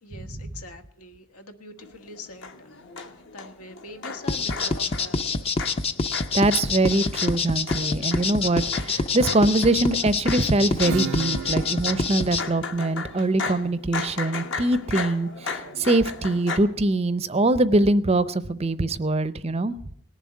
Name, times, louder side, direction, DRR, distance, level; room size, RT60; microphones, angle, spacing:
voice 1, 0.0-5.4, left 2 dB, 85° left, 7 dB, 1.5 m, -44 dB
sound 1, 1.8-16.6, left 4 dB, 55° left, 1.2 m, -36 dB
sound 2, 4.3-12.4, left 4 dB, 25° left, 0.6 m, -26 dB
voice 2, 6.3-19.7, right 2 dB, 25° right, 15 dB, 0.5 m, -23 dB
Acoustic guitar / Strum, 10.8-16.2, right 7 dB, 70° right, 0.5 m, -38 dB
18.5 x 7.3 x 9.6 m, 0.69 s
head